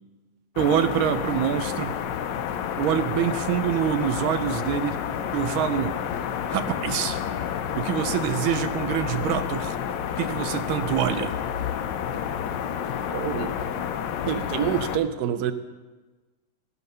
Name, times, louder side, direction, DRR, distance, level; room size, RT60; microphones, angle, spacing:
sound 1, 0.6-15.0, left 8 dB, 70° left, 1.2 m, -30 dB
voice 1, 0.6-1.9 2.8-5.0 5.3-5.9 6.5-7.2 7.8-9.8 10.2-11.3, right 9 dB, 85° right, 10 dB, 1.5 m, -25 dB
voice 2, 13.1-13.5 14.3-15.5, right 9 dB, 65° right, 10 dB, 1.0 m, -27 dB
16.0 x 5.6 x 5.4 m, 1.2 s
omnidirectional pair, 2.2 m